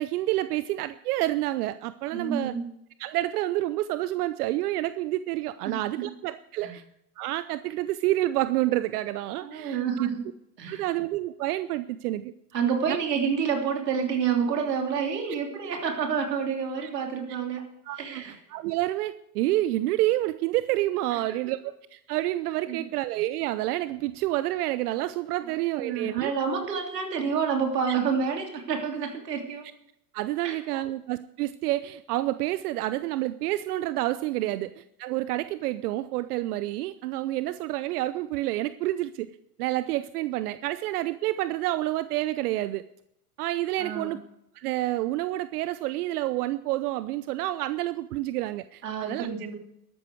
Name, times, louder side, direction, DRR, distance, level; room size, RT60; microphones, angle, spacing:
voice 1, 0.0-2.5 3.0-6.8 7.2-10.1 10.7-12.3 12.9-13.0 16.8-16.9 17.9-18.2 18.5-26.3 30.1-39.3 39.6-42.8 43.4-44.2 44.5-49.3, right 16 dB, 70° right, 14 dB, 0.7 m, -29 dB
voice 2, 2.1-2.7 5.6-6.1 6.6-6.7 9.4-10.2 10.6-10.9 12.5-17.6 18.0-18.4 21.1-21.2 22.7-22.9 25.4-29.7 30.4-30.5 43.8-44.1 48.8-49.5, right 6 dB, 90° right, 3 dB, 3.0 m, -29 dB
13.0 x 12.5 x 4.7 m, 0.79 s
hypercardioid pair, 90°, 47 cm